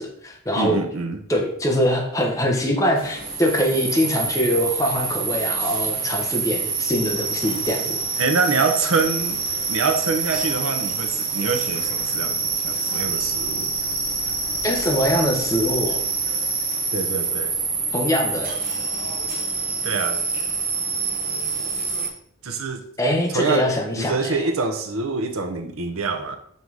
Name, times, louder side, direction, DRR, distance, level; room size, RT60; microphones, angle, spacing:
voice 1, 0.0-0.8 1.3-8.0 14.6-16.0 17.9-18.5 23.0-24.4, equal, 15° left, 0 dB, 1.0 m, -23 dB
voice 2, 0.6-1.2 8.2-9.4 9.7-13.7 16.9-17.5 19.8-20.2 22.4-22.8 23.3-23.7 24.0-26.4, right 4 dB, 80° right, 6 dB, 0.8 m, -25 dB
sound 1, 3.0-22.1, right 4 dB, 45° right, 1.2 m, -26 dB
5.4 x 4.0 x 4.7 m, 0.68 s
head